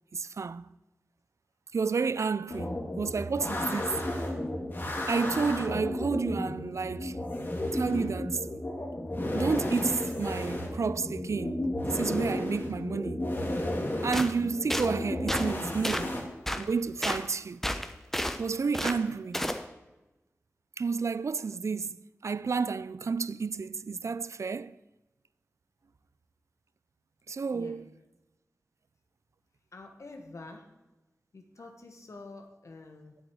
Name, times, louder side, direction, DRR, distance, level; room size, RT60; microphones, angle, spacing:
voice 1, 0.1-0.7 1.7-4.0 5.1-7.2 7.7-8.5 9.3-13.3 14.0-16.2 16.6-17.6 18.4-19.5 20.8-22.0 22.2-24.8 27.3-27.9, right 5 dB, 70° right, 0.4 m, -31 dB
sound 1, 2.5-16.2, left 1 dB, 40° left, 2.3 m, -33 dB
sound 2, 14.1-14.3 14.7-14.9 15.3-15.5 15.8-16.1 16.5-16.6 17.0-17.2 17.6-18.4 18.7-19.0 19.3-19.6, equal, 5° left, 0.8 m, -30 dB
voice 2, 29.7-30.6 31.3-33.2, left 3 dB, 75° left, 1.3 m, -47 dB
7.9 x 7.9 x 8.5 m
wide cardioid pair, 75°, 5 cm